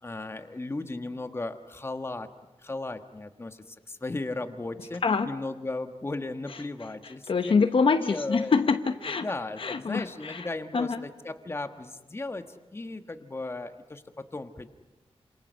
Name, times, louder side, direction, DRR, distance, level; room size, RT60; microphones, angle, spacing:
voice 1, 0.0-2.3 2.6-7.5 7.9-8.5 9.2-14.7, left 2 dB, 25° left, 8 dB, 1.4 m, -36 dB
voice 2, 7.0-9.3 9.6-10.5 10.7-11.1, left 5 dB, 55° left, 8 dB, 0.9 m, -25 dB
28.0 x 27.0 x 6.4 m, 1.2 s
wide cardioid pair, 135°, 11 cm